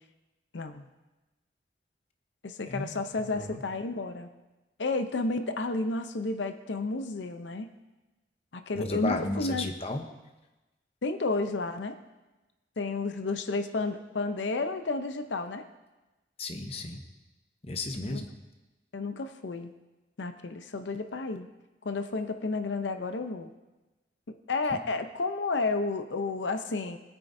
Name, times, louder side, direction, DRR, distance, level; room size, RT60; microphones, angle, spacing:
voice 1, 0.5-0.9 2.4-4.3 4.8-7.7 8.5-9.7 11.0-12.0 12.8-15.7 18.1-18.2 18.9-19.7 20.2-21.5 21.8-23.5 24.3-27.0, left 3 dB, 90° left, 8 dB, 0.7 m, -31 dB
voice 2, 2.7-3.6 8.8-10.0 16.4-17.0 17.7-18.3, left 2 dB, 35° left, 5 dB, 0.8 m, -34 dB
20.0 x 9.0 x 2.7 m, 1.1 s
head